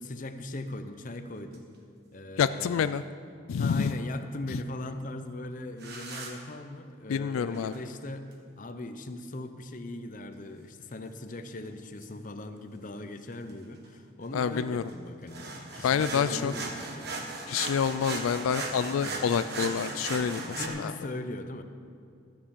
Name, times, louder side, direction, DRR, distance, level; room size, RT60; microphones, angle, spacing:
voice 1, 0.0-1.7 2.1-3.0 3.6-17.2 19.0-19.3 20.2-21.6, left 1 dB, 40° left, 8 dB, 0.7 m, -39 dB
sound 1, 1.4-1.6 5.8-6.3 7.5-7.9 11.6-11.7 12.0-12.1 13.5-13.6 13.8-13.9 14.2-20.7, right 3 dB, 55° right, 1.4 m, -37 dB
voice 2, 2.4-3.0 3.5-3.9 7.1-7.7 14.3-14.8 15.8-16.5 17.5-20.9, left 7 dB, 90° left, 13 dB, 0.3 m, -28 dB
13.0 x 7.0 x 7.4 m, 2.4 s
head